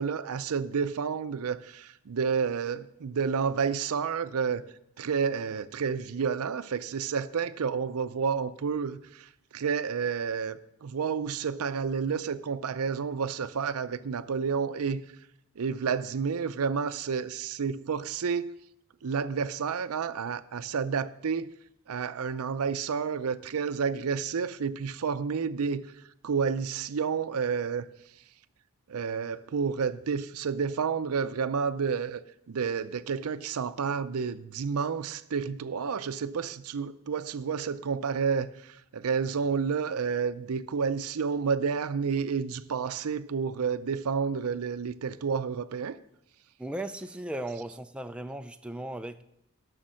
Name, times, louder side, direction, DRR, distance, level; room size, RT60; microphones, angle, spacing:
voice 1, 0.0-4.6 5.0-15.0 15.6-18.5 19.0-21.5 21.9-25.8 26.2-27.9 28.9-32.2 32.5-46.0 47.5-47.6, right 6 dB, 80° right, 0.5 m, -30 dB
voice 2, 46.6-49.2, right 1 dB, 5° right, 0.3 m, -37 dB
11.5 x 6.4 x 6.3 m
head